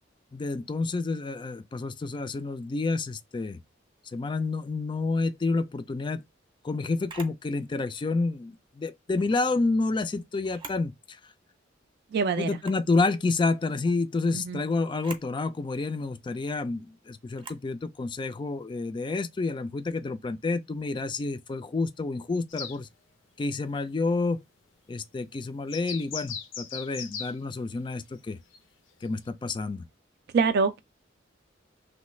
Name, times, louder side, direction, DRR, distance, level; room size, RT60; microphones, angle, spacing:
voice 1, 0.3-3.6 4.1-6.2 6.6-11.2 12.4-22.9 23.4-24.4 24.9-28.4 29.0-29.9, left 3 dB, 25° left, 0.3 m, -29 dB
Camera, 7.1-7.4 9.1-9.5 10.4-10.9 11.3-11.4 12.5-12.9 14.9-15.3 17.3-17.7, right 4 dB, 25° right, 0.7 m, -44 dB
voice 2, 12.1-12.6 14.3-14.6 30.3-30.8, right 5 dB, 55° right, 0.3 m, -25 dB
sound 1, 22.5-22.8 25.7-27.3 28.5-28.6 29.3-29.4, left 7 dB, 90° left, 0.6 m, -37 dB
3.1 x 2.2 x 3.0 m
head